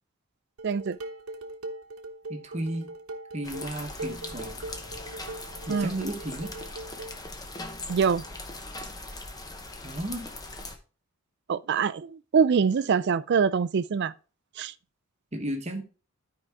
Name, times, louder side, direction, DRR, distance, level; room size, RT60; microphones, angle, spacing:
voice 1, 0.6-1.0 5.7-6.0 7.9-8.2 11.5-14.1 14.6-14.7, right 6 dB, 55° right, 0.4 m, -24 dB
Dishes pots and pans, 0.6-7.2, right 2 dB, 80° right, 1.0 m, -40 dB
voice 2, 2.3-2.9 3.3-4.6 5.6-6.5 9.8-10.3 15.3-15.8, right 1 dB, 30° right, 1.1 m, -33 dB
sound 1, 3.4-10.8, left 2 dB, 20° left, 0.9 m, -40 dB
12.5 x 4.8 x 3.5 m
head